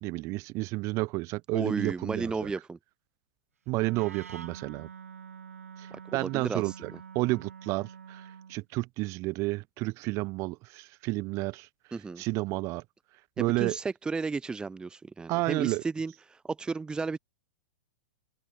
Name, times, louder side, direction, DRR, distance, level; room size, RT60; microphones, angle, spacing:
voice 1, 0.0-2.5 3.7-4.9 5.8-11.7 12.2-12.8 13.4-13.8 15.3-15.8, right 22 dB, 40° right, 1.8 m, -31 dB
voice 2, 1.5-2.8 5.9-7.0 11.9-12.2 13.4-17.2, right 4 dB, 10° right, 0.9 m, -34 dB
Wind instrument woodwind instrument, 3.7-8.6, right 7 dB, 75° right, 3.8 m, -46 dB
open air
figure-of-eight pair, 105°, 8 cm